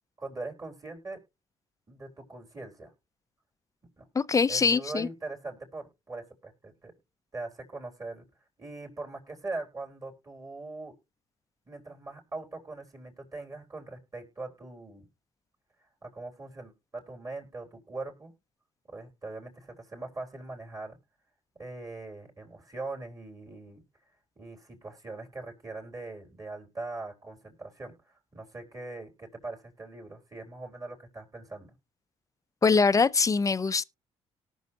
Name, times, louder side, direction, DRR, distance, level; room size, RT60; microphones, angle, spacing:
voice 1, 0.2-1.2 1.9-2.9 4.0-4.1 4.5-6.9 7.3-8.3 8.6-10.9 11.7-15.1 16.0-18.3 18.9-21.0 21.6-23.8 24.4-27.9 28.3-31.7, right 2 dB, 30° right, 3.9 m, -41 dB
voice 2, 4.1-5.1 32.6-33.8, left 4 dB, 25° left, 0.5 m, -23 dB
18.5 x 6.4 x 2.8 m
supercardioid pair, 70°, 12 cm